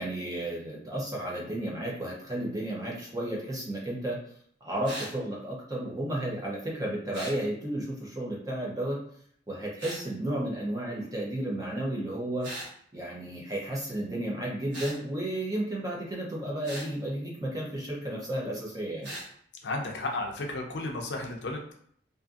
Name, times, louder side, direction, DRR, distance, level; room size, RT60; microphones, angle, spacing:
voice 1, 0.0-4.2 4.6-9.0 9.5-12.5 12.9-19.1, right 1 dB, 20° right, -3 dB, 0.6 m, -33 dB
sound 1, 4.8-5.1 7.1-7.4 9.8-10.0 12.4-12.7 14.7-15.0 16.6-16.9 19.0-19.3, right 1 dB, 80° right, 1.2 m, -39 dB
voice 2, 19.6-21.7, left 2 dB, 70° left, 1 dB, 0.5 m, -33 dB
2.5 x 2.5 x 2.4 m, 0.64 s
head